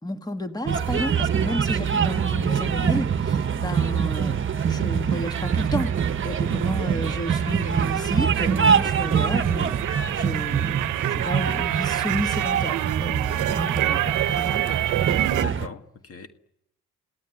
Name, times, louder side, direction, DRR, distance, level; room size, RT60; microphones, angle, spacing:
voice 1, 0.0-4.4 4.6-5.9 6.2-9.7 10.2-14.0 14.3-14.7, equal, 15° left, 2.0 m, -32 dB
sound 1, 0.6-15.7, right 7 dB, 40° right, 1.2 m, -24 dB
sound 2, 5.1-15.4, right 13 dB, 85° right, 0.9 m, -29 dB
voice 2, 15.3-16.3, left 6 dB, 50° left, 1.8 m, -39 dB
28.0 x 18.5 x 10.0 m
cardioid pair, 90°, 30 cm